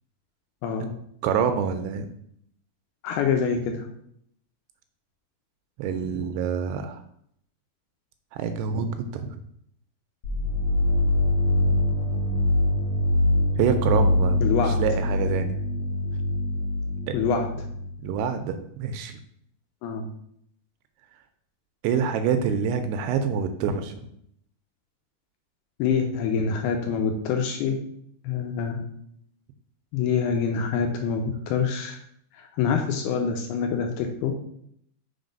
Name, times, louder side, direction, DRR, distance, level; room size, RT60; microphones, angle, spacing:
voice 1, 0.6-0.9 3.0-3.9 14.4-14.8 17.1-17.5 19.8-20.1 25.8-27.8 28.2-28.8 29.9-32.0 32.3-34.3, left 6 dB, 80° left, 4 dB, 2.3 m, -25 dB
voice 2, 1.2-2.1 5.8-7.0 8.3-9.4 13.6-15.5 17.1-17.2 18.0-19.2 21.8-24.0, right 6 dB, 85° right, 8 dB, 2.4 m, -26 dB
sound 1, 10.2-18.0, left 1 dB, 60° left, 1.8 m, -24 dB
6.1 x 4.1 x 5.1 m, 0.70 s
omnidirectional pair, 5.1 m